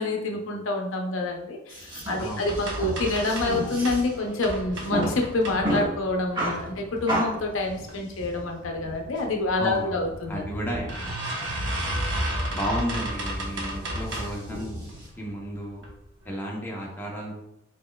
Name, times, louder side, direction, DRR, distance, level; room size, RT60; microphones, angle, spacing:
voice 1, 0.0-10.5, left 2 dB, 75° left, 2 dB, 0.6 m, -27 dB
sound 1, 1.7-15.1, equal, 25° right, 1.4 m, -34 dB
voice 2, 2.2-2.8 9.6-10.9 11.7-12.0 12.5-15.8 16.2-17.4, equal, 10° left, -3 dB, 0.8 m, -33 dB
sound 2, 2.4-4.1 4.4-6.0 6.5-7.1 7.6-8.2 8.6-8.7 9.8-9.9 10.3-10.4 10.9-14.5 14.9-15.3 15.8-15.9 16.3-16.4, right 1 dB, 65° right, 0.9 m, -32 dB
4.2 x 3.5 x 2.2 m, 0.85 s
head